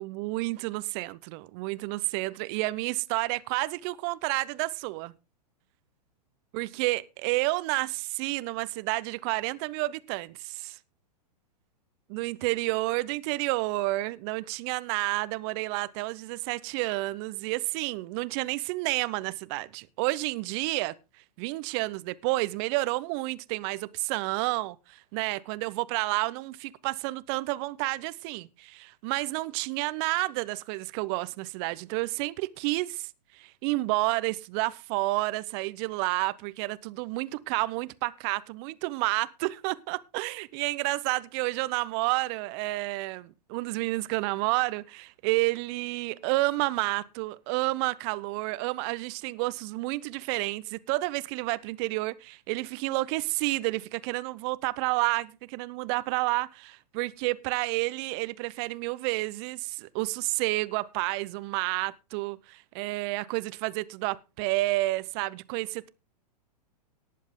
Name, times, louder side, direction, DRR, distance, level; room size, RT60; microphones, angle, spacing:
voice 1, 0.0-5.1 6.5-10.8 12.1-20.9 21.4-65.9, right 21 dB, 40° right, 0.8 m, -30 dB
18.5 x 7.5 x 3.7 m
figure-of-eight pair, 110°, 21 cm